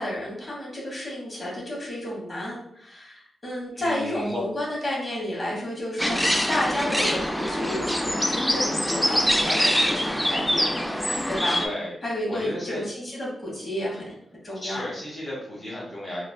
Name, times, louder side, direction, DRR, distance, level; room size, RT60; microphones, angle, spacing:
voice 1, 0.0-10.7 11.3-11.6 12.0-14.1 14.4-14.8, left 1 dB, 25° left, -4 dB, 1.2 m, -31 dB
voice 2, 3.7-4.4 11.6-11.9 12.3-12.8 14.6-16.2, left 1 dB, 50° left, -6 dB, 1.0 m, -34 dB
sound 1, 6.0-11.7, equal, 5° left, 0.3 m, -24 dB
3.0 x 2.3 x 2.2 m, 0.71 s
cardioid pair, 65°, 0 cm